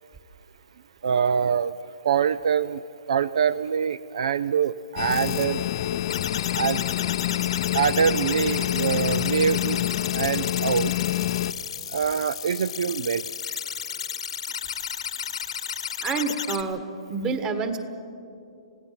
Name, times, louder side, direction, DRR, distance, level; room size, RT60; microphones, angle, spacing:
voice 1, 1.0-1.7 2.0-2.8 3.1-5.6 6.5-6.8 7.7-10.9 11.9-13.6, right 7 dB, 70° right, 17 dB, 0.4 m, -24 dB
sound 1, 5.0-11.5, left 13 dB, 45° left, 0.6 m, -27 dB
sound 2, 5.1-5.5 6.1-16.6, left 8 dB, 75° left, 1.2 m, -33 dB
voice 2, 16.0-16.8 17.1-17.8, right 4 dB, 20° right, 8 dB, 1.5 m, -27 dB
29.0 x 16.5 x 5.9 m, 2.6 s
hypercardioid pair, 145°, 3 cm